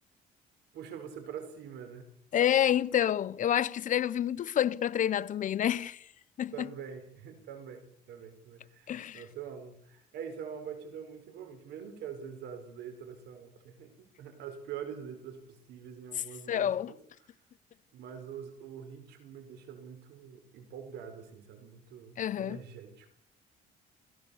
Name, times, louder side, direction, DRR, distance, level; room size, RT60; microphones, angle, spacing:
voice 1, 0.7-2.1 6.5-17.0 17.9-23.1, right 7 dB, 80° right, 5.1 m, -44 dB
voice 2, 2.3-6.0 6.4-6.7 8.9-9.2 16.5-16.9 22.2-22.6, left 10 dB, 50° left, 0.8 m, -28 dB
29.0 x 16.5 x 7.1 m
cardioid pair, 110°, 17 cm